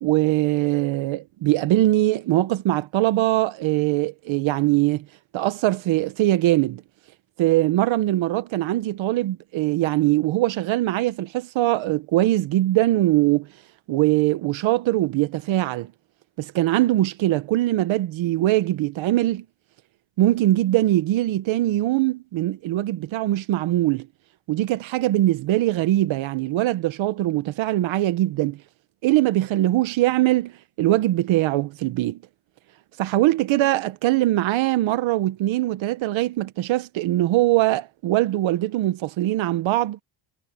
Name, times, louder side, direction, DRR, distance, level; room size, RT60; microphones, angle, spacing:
voice 1, 0.0-5.1 5.3-6.8 7.4-13.5 13.9-15.9 16.4-19.4 20.2-24.1 24.5-28.6 29.0-30.5 30.8-32.2 33.0-40.0, right 15 dB, 85° right, 1.2 m, -22 dB
cardioid pair, 125°, 45 cm